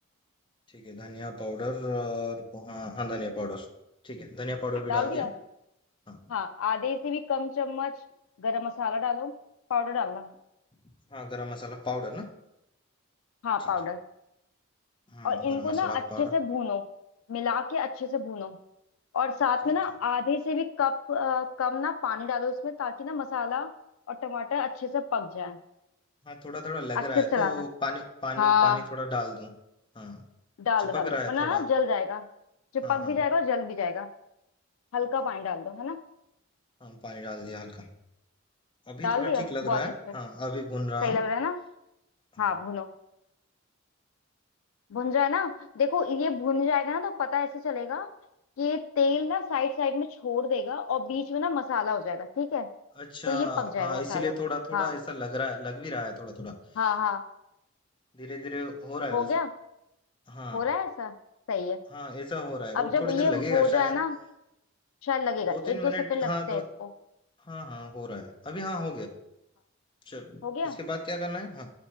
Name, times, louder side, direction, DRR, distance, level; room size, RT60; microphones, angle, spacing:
voice 1, 0.7-3.7 4.0-5.3 6.1-6.2 11.1-12.3 15.1-16.3 26.2-29.6 29.9-30.2 30.9-31.6 32.8-33.2 36.8-37.9 38.9-41.2 42.3-42.5 53.0-56.5 58.1-59.3 60.3-60.7 61.9-63.9 65.5-66.6 67.4-69.2 70.1-71.7, left 2 dB, 25° left, 2 dB, 0.7 m, -35 dB
voice 2, 4.9-5.3 6.3-7.9 8.4-9.3 9.7-10.3 13.4-14.0 15.2-16.8 17.3-18.6 19.1-23.7 24.1-25.6 27.0-27.6 28.4-28.8 30.6-32.2 32.7-34.1 34.9-36.0 39.0-39.8 41.0-41.6 42.4-42.9 44.9-48.1 48.6-52.7 53.3-54.3 54.7-54.9 56.8-57.2 59.1-59.5 60.5-61.1 61.5-61.8 62.7-64.2 65.0-66.6 70.4-70.8, left 6 dB, 75° left, 9 dB, 0.4 m, -28 dB
8.6 x 4.3 x 4.3 m, 0.87 s
head